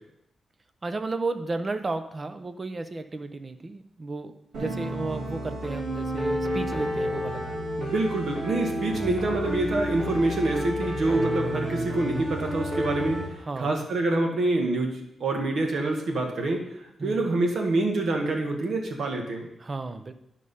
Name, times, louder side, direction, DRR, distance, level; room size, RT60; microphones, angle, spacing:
voice 1, 0.8-7.6 13.4-13.8 17.0-17.3 19.6-20.1, right 3 dB, 30° right, 9 dB, 0.6 m, -33 dB
sound 1, 4.5-13.3, equal, 80° right, 3.2 m, -30 dB
voice 2, 7.8-13.2 13.6-14.9 15.2-16.6 17.0-19.5, right 2 dB, 65° right, 2 dB, 1.8 m, -26 dB
10.5 x 5.0 x 5.5 m, 0.80 s
wide cardioid pair, 135°, 0 cm